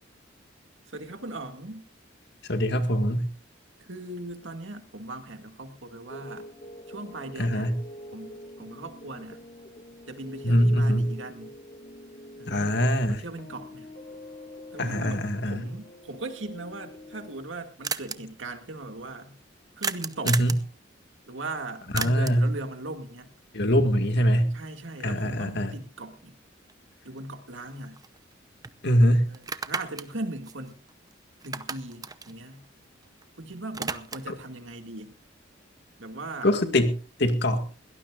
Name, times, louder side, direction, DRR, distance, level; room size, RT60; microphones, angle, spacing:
voice 1, 0.9-1.8 3.8-6.5 6.9-7.7 8.1-9.4 10.1-11.5 12.4-13.9 14.7-19.4 19.8-20.4 21.3-23.3 24.5-26.4 27.0-28.0 29.3-30.8 31.4-32.7 33.4-35.1 36.0-36.5, right 2 dB, 75° right, 6 dB, 2.2 m, -39 dB
voice 2, 2.5-3.3 7.4-7.8 10.4-11.1 12.5-13.2 14.8-15.7 20.3-20.5 21.9-22.5 23.5-24.5 25.0-25.7 28.8-29.3 34.3-34.4 36.4-36.9 37.2-37.6, equal, 60° left, 7 dB, 2.0 m, -23 dB
sound 1, 6.1-17.4, left 1 dB, 45° left, 2.1 m, -45 dB
sound 2, 17.8-18.2 19.8-20.7 22.0-22.5 26.7-26.8 27.2-28.3 28.6-28.8 29.3-31.1 31.4-33.2 33.5-34.4, right 5 dB, 20° right, 0.7 m, -34 dB
21.5 x 17.5 x 2.5 m, 0.35 s
head